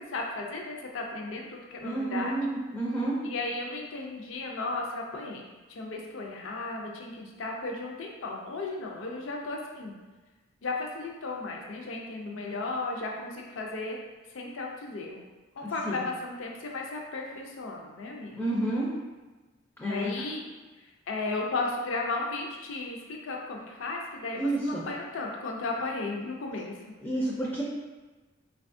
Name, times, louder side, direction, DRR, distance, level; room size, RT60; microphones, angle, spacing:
voice 1, 0.0-2.4 3.2-5.4 5.7-9.9 10.6-14.0 14.3-15.2 15.6-18.5 19.8-20.4 20.8-26.9, left 3 dB, 70° left, 0 dB, 0.4 m, -35 dB
voice 2, 1.8-3.2 15.6-16.0 18.3-18.9 19.8-20.1 24.4-24.8 27.0-27.6, right 2 dB, 10° left, -6 dB, 0.4 m, -30 dB
4.0 x 2.3 x 2.5 m, 1.2 s
head